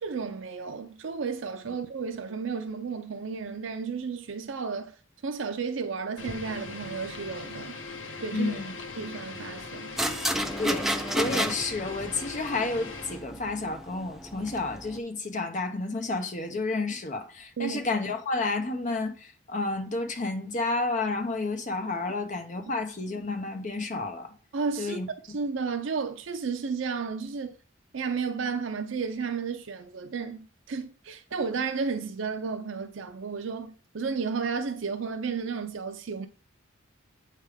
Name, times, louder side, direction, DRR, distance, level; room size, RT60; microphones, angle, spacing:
voice 1, 0.0-5.0 5.2-7.8 8.2-8.6 9.0-10.0 17.6-17.8 24.5-25.0 25.3-27.5 27.9-36.3, right 5 dB, 75° right, 0.5 m, -33 dB
sound 1, 6.2-13.2, left 3 dB, 75° left, 1.1 m, -40 dB
voice 2, 8.3-8.7 10.6-10.9 11.1-24.3 24.8-25.1, left 3 dB, 40° left, 1.0 m, -31 dB
sound 2, 10.0-15.0, equal, ahead, 0.5 m, -32 dB
8.2 x 3.4 x 4.9 m
head